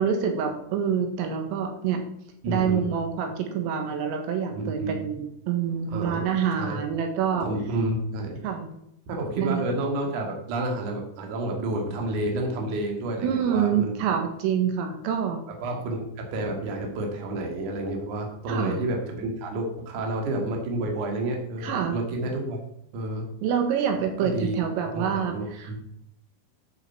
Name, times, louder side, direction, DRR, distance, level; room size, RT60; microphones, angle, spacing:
voice 1, 0.0-2.0 2.5-7.5 8.4-8.7 9.4-9.6 13.2-15.4 18.5-18.8 21.6-22.0 23.4-25.8, right 7 dB, 80° right, 4 dB, 4.2 m, -26 dB
voice 2, 2.4-2.8 4.5-4.9 5.9-6.3 6.6-6.8 7.4-8.4 9.1-13.9 15.6-22.6 22.9-23.2 24.2-24.6 24.9-25.8, right 1 dB, 45° right, 1 dB, 3.0 m, -30 dB
10.5 x 8.3 x 6.0 m, 0.78 s
omnidirectional pair, 6.0 m